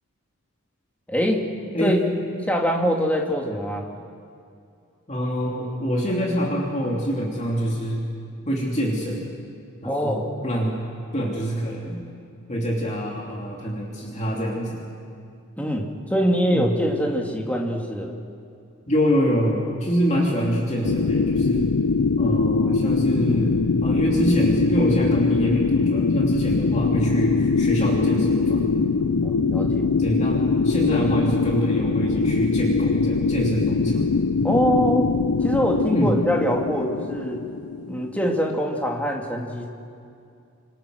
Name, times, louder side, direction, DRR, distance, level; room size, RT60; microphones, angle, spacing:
voice 1, 1.1-1.4 1.8-2.0 2.5-3.9 9.8-10.3 15.6-18.1 22.2-22.5 29.2-29.9 34.4-35.1 35.4-37.4 37.9-39.7, equal, 5° left, 0 dB, 2.4 m, -24 dB
voice 2, 5.1-8.1 8.5-9.2 9.8-10.8 11.1-12.0 12.5-14.8 16.5-16.7 18.9-21.7 22.2-28.6 30.0-34.0 35.9-36.2, equal, 30° left, -2 dB, 2.9 m, -25 dB
sound 1, 20.8-38.5, left 4 dB, 85° left, 0.6 m, -22 dB
28.5 x 26.5 x 6.4 m, 2.5 s
head